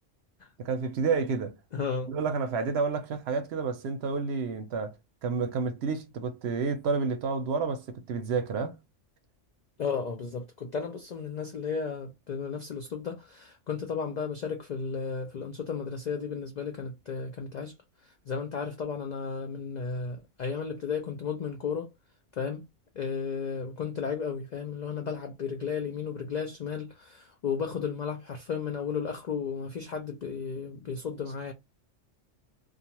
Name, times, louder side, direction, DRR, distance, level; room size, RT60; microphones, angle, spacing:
voice 1, 0.6-1.6 2.1-4.9 5.2-8.8, right 4 dB, 65° right, 0.7 m, -30 dB
voice 2, 1.7-2.1 9.8-17.7 18.3-21.9 22.4-22.6 23.0-31.5, left 6 dB, 90° left, 0.3 m, -34 dB
2.4 x 2.3 x 2.8 m
omnidirectional pair, 1.3 m